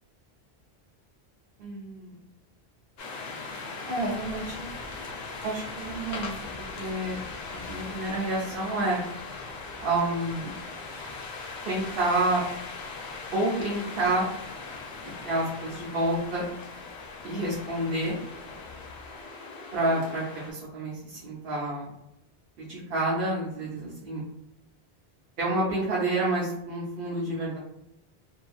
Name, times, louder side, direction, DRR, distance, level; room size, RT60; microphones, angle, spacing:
voice 1, 1.6-2.2 3.9-4.7 5.4-7.2 7.5-9.0 9.8-10.5 11.6-12.4 13.3-14.3 15.2-16.5 17.2-18.2 19.7-21.9 22.6-24.2 25.4-27.6, right 2 dB, 65° right, -7 dB, 0.9 m, -29 dB
sound 1, 3.0-20.5, left 4 dB, 75° left, 0.9 m, -39 dB
2.8 x 2.5 x 2.4 m, 0.84 s
omnidirectional pair, 1.1 m